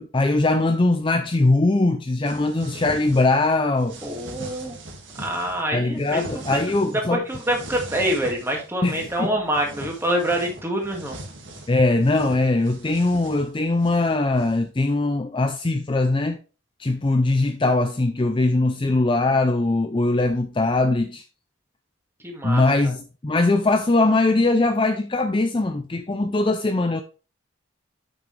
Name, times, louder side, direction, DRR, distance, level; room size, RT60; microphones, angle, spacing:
voice 1, 0.0-4.0 5.7-7.2 8.8-9.3 11.7-16.4 16.8-21.2 22.4-27.0, left 2 dB, 25° left, 0.4 m, -21 dB
sound 1, 2.2-3.5 3.8-5.6 6.0-7.0 7.3-9.2 9.5-14.7, right 2 dB, 60° right, 2.1 m, -40 dB
voice 2, 4.0-4.8 5.2-6.2 7.1-11.2 22.2-22.9, equal, 10° right, 2.0 m, -26 dB
8.6 x 6.2 x 3.2 m
head